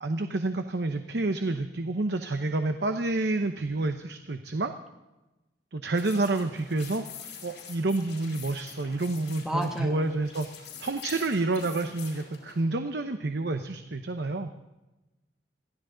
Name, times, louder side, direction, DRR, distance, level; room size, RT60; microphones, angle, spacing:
voice 1, 0.0-4.7 5.7-7.0 7.4-10.5 10.8-14.5, right 2 dB, 70° right, 7 dB, 0.8 m, -29 dB
sound 1, 5.9-12.6, left 6 dB, 85° left, 5.3 m, -45 dB
voice 2, 9.4-10.2, right 1 dB, 5° right, 2 dB, 1.8 m, -32 dB
22.5 x 15.0 x 3.9 m, 1.0 s
head